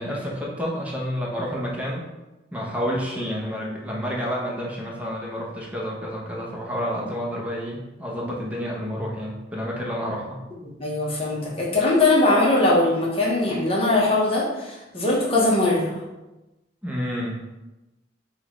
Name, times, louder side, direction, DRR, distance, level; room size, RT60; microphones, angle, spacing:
voice 1, 0.0-2.0 2.5-10.4 16.8-17.4, equal, 10° right, -3 dB, 0.8 m, -29 dB
voice 2, 10.6-15.9, left 2 dB, 30° left, -4 dB, 1.0 m, -21 dB
6.1 x 2.4 x 3.0 m, 1.0 s
head